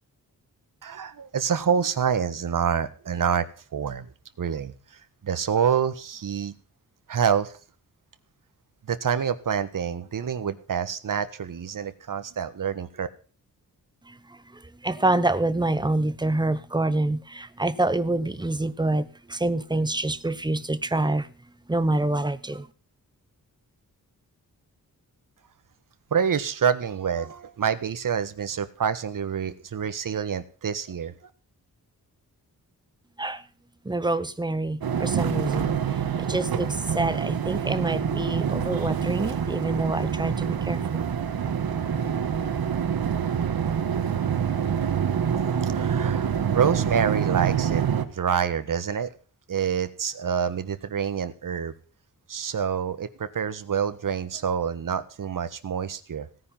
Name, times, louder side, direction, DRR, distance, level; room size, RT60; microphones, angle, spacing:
voice 1, 0.8-3.5 3.7-4.1 4.4-4.7 5.2-6.5 7.1-7.6 8.9-13.1 26.1-31.1 45.6-49.1 49.5-51.7 52.3-56.3, right 7 dB, 65° right, 11 dB, 1.5 m, -27 dB
voice 2, 14.1-21.3 21.7-22.7 33.2-33.4 33.8-35.7 36.2-40.8, right 2 dB, 10° right, 13 dB, 1.0 m, -26 dB
sound 1, 34.8-48.1, right 8 dB, 85° right, 1.7 m, -26 dB
17.5 x 9.7 x 5.7 m, 0.37 s
wide cardioid pair, 155°, 36 cm